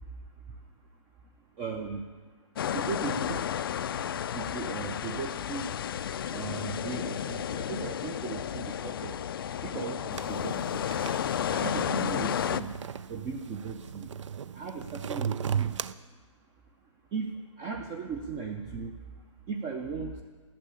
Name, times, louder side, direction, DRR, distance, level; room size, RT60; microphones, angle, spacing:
voice 1, 1.6-2.0 2.7-3.6 4.3-5.6 6.3-9.2 9.6-10.9 11.5-12.7 13.1-14.1 14.5-15.8 17.1-17.3 17.6-18.9 19.5-20.2, right 5 dB, 15° right, 4 dB, 0.5 m, -37 dB
sound 1, 2.6-12.6, left 9 dB, 45° left, 0.4 m, -32 dB
sound 2, 10.1-15.9, right 8 dB, 65° right, 0.5 m, -36 dB
12.0 x 7.2 x 8.4 m, 1.5 s
hypercardioid pair, 150°, 17 cm